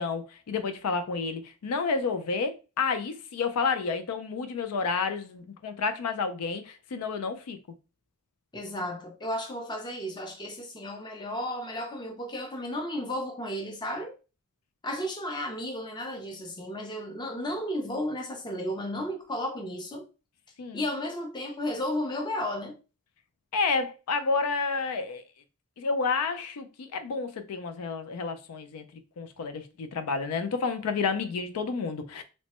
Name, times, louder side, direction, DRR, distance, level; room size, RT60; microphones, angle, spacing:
voice 1, 0.0-7.6 20.6-20.8 23.5-25.2 25.8-28.8 29.2-32.2, left 4 dB, 85° left, 0.4 m, -30 dB
voice 2, 8.5-14.1 14.8-20.0 20.7-22.8, left 1 dB, 20° left, 0.6 m, -33 dB
3.1 x 2.1 x 2.9 m
head